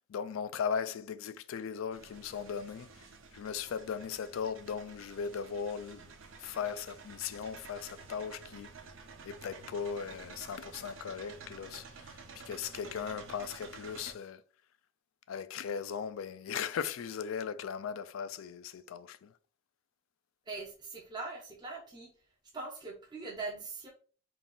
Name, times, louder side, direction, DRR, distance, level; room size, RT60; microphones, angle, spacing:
voice 1, 0.1-3.0 3.3-6.1 6.4-8.7 9.2-12.2 12.5-14.4 15.3-19.3, left 7 dB, 85° left, 0.3 m, -38 dB
sound 1, 1.9-14.1, right 5 dB, 75° right, 0.6 m, -51 dB
voice 2, 20.5-22.1 22.5-23.9, right 3 dB, 20° right, 0.6 m, -41 dB
3.9 x 2.5 x 3.6 m
head